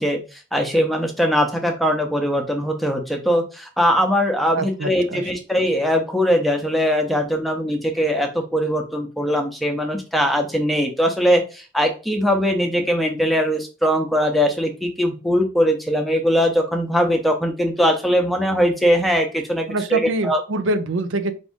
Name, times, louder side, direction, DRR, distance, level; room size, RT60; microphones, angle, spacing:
voice 1, 0.0-20.4, equal, ahead, 3 dB, 0.6 m, -21 dB
voice 2, 4.5-5.3 19.7-21.3, right 2 dB, 90° right, 8 dB, 0.5 m, -25 dB
4.8 x 2.6 x 3.5 m, 0.33 s
head